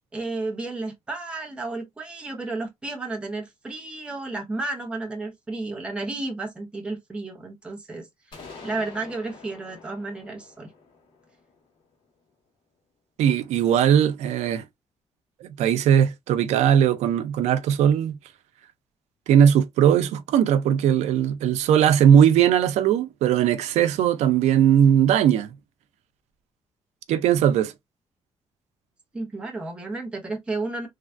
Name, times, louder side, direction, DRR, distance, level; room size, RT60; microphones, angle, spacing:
voice 1, 0.1-10.7 29.1-30.9, right 3 dB, 10° right, 0.7 m, -32 dB
sound 1, 8.3-12.1, left 4 dB, 50° left, 1.5 m, -46 dB
voice 2, 13.2-14.6 15.4-18.1 19.3-25.5 27.1-27.7, right 9 dB, 90° right, 0.5 m, -19 dB
3.2 x 2.3 x 2.5 m
cardioid pair, 180°, 11 cm